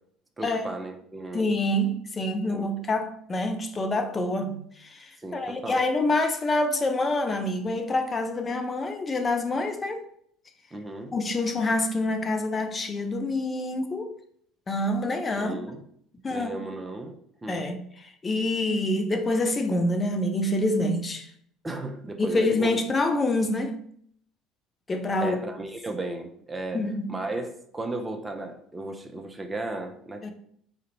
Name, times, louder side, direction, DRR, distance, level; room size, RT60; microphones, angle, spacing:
voice 1, 0.4-1.5 2.5-2.7 5.2-5.8 10.7-11.1 15.3-15.8 16.3-17.1 17.4-17.6 21.6-22.7 25.2-30.3, right 2 dB, 15° right, 0.6 m, -35 dB
voice 2, 1.3-10.0 11.1-14.1 14.7-15.6 16.2-16.6 17.5-21.3 22.2-23.8 24.9-25.4 26.7-27.2 30.2-30.3, left 2 dB, 25° left, 0.6 m, -26 dB
4.3 x 2.5 x 2.8 m
figure-of-eight pair, 60°, 0 cm